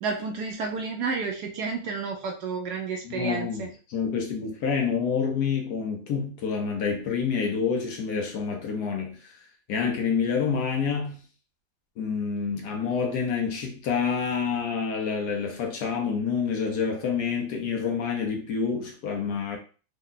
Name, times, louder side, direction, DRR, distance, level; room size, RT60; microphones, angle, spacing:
voice 1, 0.0-3.7, right 4 dB, 70° right, 1.0 m, -31 dB
voice 2, 3.0-9.4 9.7-11.2 12.0-19.6, left 6 dB, 65° left, 1.2 m, -28 dB
3.6 x 2.1 x 3.8 m
omnidirectional pair, 2.0 m